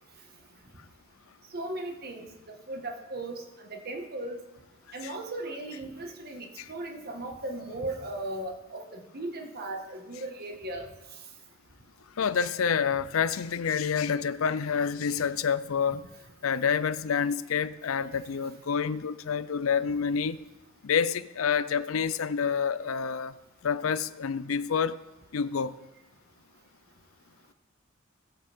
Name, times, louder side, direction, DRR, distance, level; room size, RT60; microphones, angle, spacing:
voice 1, 1.5-2.3 2.7-4.4 4.9-10.9, right 2 dB, 50° right, 1.6 m, -37 dB
voice 2, 12.2-16.1 16.4-20.4 20.8-23.3 23.6-25.0 25.3-25.8, left 6 dB, 80° left, 0.5 m, -28 dB
19.5 x 8.2 x 3.6 m
head